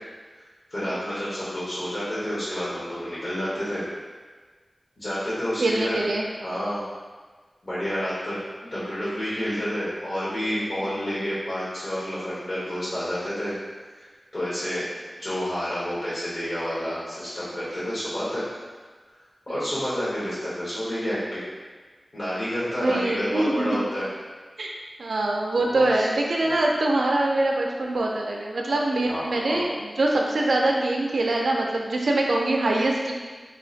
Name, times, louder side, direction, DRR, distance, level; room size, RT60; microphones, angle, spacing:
voice 1, 0.7-3.8 5.0-6.1 6.4-6.8 7.6-8.4 8.7-13.5 13.9-14.1 14.3-14.8 15.2-18.4 19.5-21.5 22.1-24.1 25.7-26.1 26.4-26.6 29.0-29.6, equal, 65° left, -11 dB, 1.1 m, -29 dB
voice 2, 5.6-6.2 22.8-23.6 24.6-24.7 25.0-33.1, right 2 dB, 90° right, -1 dB, 0.4 m, -24 dB
2.8 x 2.4 x 3.8 m, 1.4 s
wide cardioid pair, 50°, 0 cm